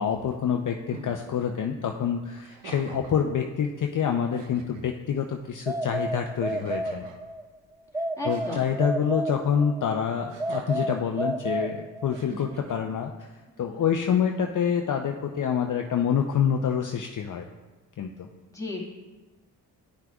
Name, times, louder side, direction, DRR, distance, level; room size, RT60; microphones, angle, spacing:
voice 1, 0.0-7.0 8.2-13.1 13.6-17.4 18.0-18.1, left 7 dB, 45° left, 3 dB, 0.6 m, -27 dB
sound 1, 0.9-1.2 2.4-3.3 3.9-4.0 4.3-4.9 6.4-7.2 8.3-8.7 10.3-11.0 12.1-12.7, right 5 dB, 80° right, 0.9 m, -44 dB
sound 2, 5.7-7.4 7.9-9.9 10.4-12.3, right 1 dB, 10° right, 0.4 m, -31 dB
voice 2, 8.2-8.7 18.5-18.8, left 2 dB, 10° left, -3 dB, 1.8 m, -34 dB
11.0 x 5.9 x 2.3 m, 1.2 s
supercardioid pair, 50°, 43 cm